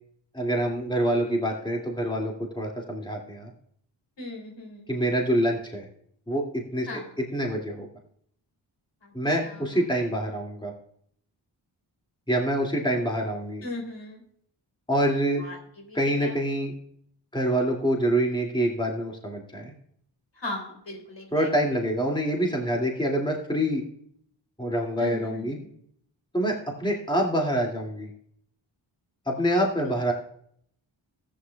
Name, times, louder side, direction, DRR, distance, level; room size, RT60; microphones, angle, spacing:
voice 1, 0.3-3.5 4.9-5.9 6.3-7.9 9.1-10.7 12.3-13.6 14.9-15.4 15.9-16.7 17.3-19.7 21.3-23.8 24.6-25.6 26.3-26.5 26.8-28.1 29.3-30.1, right 1 dB, 10° left, 0 dB, 2.3 m, -26 dB
voice 2, 4.2-4.9 6.9-7.1 13.6-14.2 15.4-15.5 15.9-16.3 20.4-21.5 25.0-25.7 29.8-29.9, left 2 dB, 65° left, 1 dB, 3.5 m, -37 dB
14.5 x 9.9 x 2.3 m, 0.66 s
cardioid pair, 45°, 46 cm